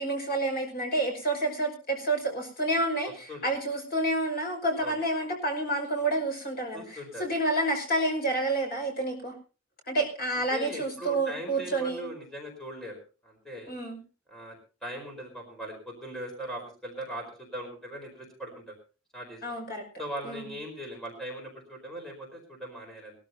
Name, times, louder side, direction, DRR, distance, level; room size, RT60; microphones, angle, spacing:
voice 1, 0.0-9.4 9.9-12.1 13.7-14.0 19.4-19.8 20.2-20.5, right 2 dB, 45° left, 2 dB, 5.7 m, -29 dB
voice 2, 3.0-3.4 4.8-5.0 6.7-7.2 10.3-13.7 14.3-14.6 14.8-18.7 19.1-19.5 20.0-23.1, equal, ahead, 0 dB, 4.6 m, -40 dB
22.0 x 14.0 x 2.8 m, 0.35 s
head